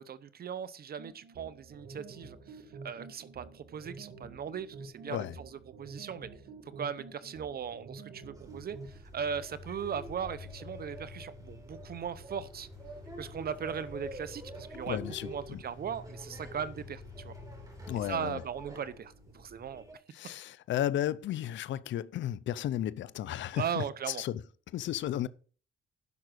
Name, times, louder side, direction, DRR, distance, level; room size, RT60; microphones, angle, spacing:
voice 1, 0.0-6.3 6.8-12.7 13.2-15.0 15.2-17.3 18.0-19.8 23.6-24.2, right 7 dB, 50° right, 0.8 m, -38 dB
sound 1, 1.0-9.0, right 4 dB, 70° right, 2.1 m, -49 dB
sound 2, 8.3-19.9, equal, 15° right, 4.0 m, -46 dB
sound 3, 12.5-18.2, left 3 dB, 5° left, 2.1 m, -59 dB
voice 2, 14.9-15.6 17.9-18.4 20.1-24.4 24.7-25.3, left 12 dB, 70° left, 0.6 m, -34 dB
11.0 x 6.1 x 6.3 m
cardioid pair, 90°, 20 cm